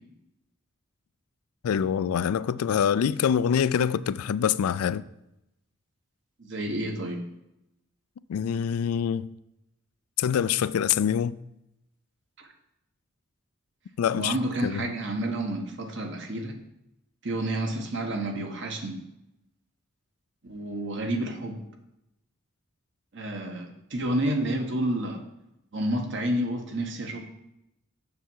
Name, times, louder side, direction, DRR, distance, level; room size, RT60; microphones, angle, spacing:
voice 1, 1.6-5.0 8.3-9.3 10.2-11.4 14.0-14.3 14.6-14.8, left 8 dB, 85° left, 0.3 m, -25 dB
voice 2, 6.4-7.2 12.4-12.5 14.1-16.6 17.2-19.0 20.4-21.6 23.1-25.2 25.7-27.2, right 1 dB, 55° right, 1.1 m, -30 dB
6.9 x 6.8 x 4.6 m
head